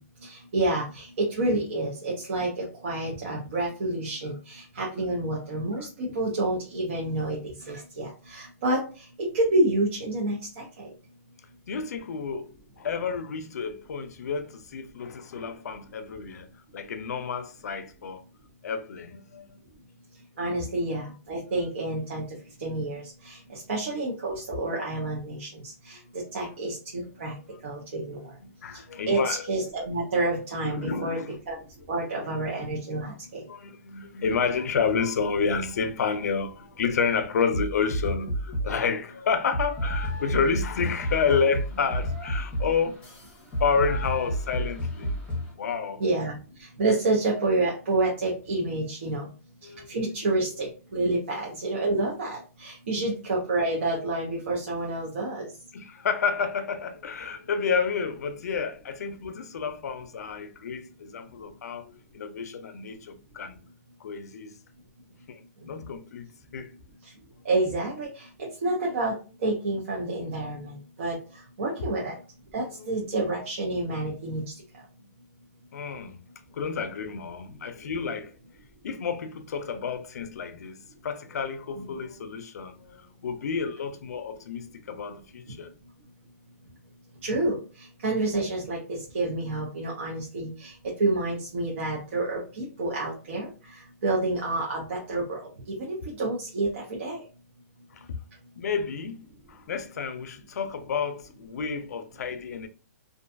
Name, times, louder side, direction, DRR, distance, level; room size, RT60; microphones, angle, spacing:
voice 1, 0.2-10.9 20.4-22.3 22.6-27.3 27.6-28.2 29.1-31.2 31.5-31.6 31.9-33.4 46.0-49.3 49.9-55.5 65.6-65.8 67.4-69.2 69.4-71.2 71.6-72.2 72.5-74.4 81.8-81.9 87.2-93.5 94.0-95.4 95.7-97.2, right 2 dB, 50° right, 0.7 m, -29 dB
voice 2, 11.7-16.5 16.7-18.2 18.6-19.6 26.0-26.1 26.4-26.5 28.1-29.5 30.6-31.4 32.1-32.3 33.5-43.0 43.6-45.2 45.6-46.0 49.6-49.9 55.7-63.6 64.0-64.6 65.3-66.7 72.8-73.2 73.8-73.9 75.0-75.1 75.7-76.2 76.5-78.4 78.8-85.7 97.9-98.2 98.6-99.2 99.5-102.7, left 5 dB, 85° left, 0.5 m, -30 dB
sound 1, 37.5-38.8 39.5-45.5, equal, 15° left, 0.8 m, -31 dB
2.5 x 2.2 x 2.5 m
hypercardioid pair, 170°, 8 cm